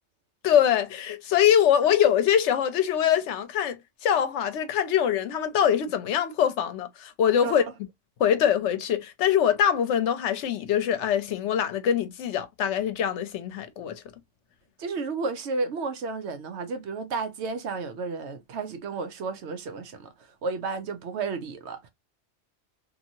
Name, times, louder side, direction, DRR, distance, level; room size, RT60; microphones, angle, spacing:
voice 1, 0.4-3.8 4.0-7.6 8.2-13.9, left 9 dB, 70° left, 0.9 m, -23 dB
voice 2, 14.8-20.1 20.4-21.9, right 4 dB, 65° right, 0.9 m, -32 dB
2.8 x 2.6 x 2.5 m
omnidirectional pair, 1.3 m